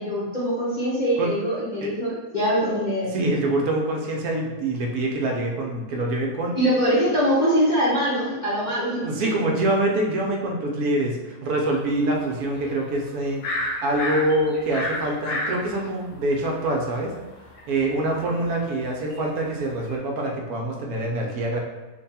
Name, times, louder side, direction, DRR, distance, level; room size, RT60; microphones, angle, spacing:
voice 1, 0.0-3.1 6.6-9.1, equal, 40° left, -9 dB, 0.7 m, -23 dB
voice 2, 3.1-6.6 9.0-17.1 17.7-21.6, right 1 dB, 75° right, 0 dB, 1.1 m, -25 dB
sound 1, 12.2-12.7 13.1-16.7 17.2-20.0, left 1 dB, 75° left, 1.4 m, -30 dB
3.3 x 2.2 x 4.0 m, 1.2 s
omnidirectional pair, 1.7 m